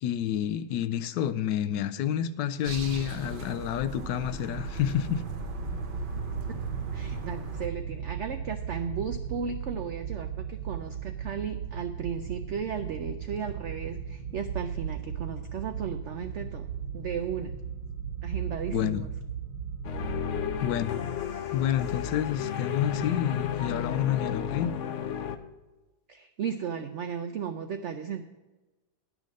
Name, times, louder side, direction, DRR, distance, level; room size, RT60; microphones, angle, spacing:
voice 1, 0.0-5.2 18.7-19.0 20.6-20.9 21.5-24.7, left 10 dB, 80° left, 10 dB, 1.2 m, -29 dB
sound 1, 2.6-7.7, right 3 dB, 40° right, 0.8 m, -39 dB
sound 2, 4.5-20.6, right 7 dB, 65° right, 1.4 m, -36 dB
voice 2, 6.9-16.7 16.9-17.6 18.2-19.1 26.1-28.2, right 7 dB, 85° right, 8 dB, 0.6 m, -35 dB
sound 3, 19.8-25.4, left 9 dB, 60° left, 0.8 m, -32 dB
10.5 x 6.4 x 6.3 m, 1.1 s
omnidirectional pair, 1.9 m